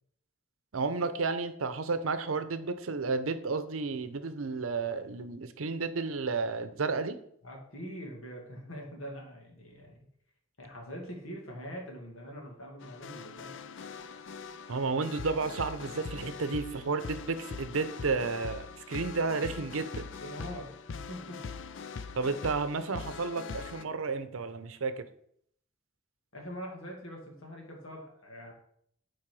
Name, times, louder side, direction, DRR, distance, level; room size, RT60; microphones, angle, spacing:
voice 1, 0.7-7.2 14.7-20.1 22.2-25.0, right 4 dB, 85° right, 11 dB, 0.7 m, -32 dB
voice 2, 7.4-10.0 10.6-13.5 20.2-21.6 26.3-28.5, equal, 85° left, 0 dB, 2.0 m, -43 dB
sound 1, 12.8-23.8, left 5 dB, 65° left, 0.5 m, -42 dB
7.5 x 4.6 x 4.7 m, 0.68 s
head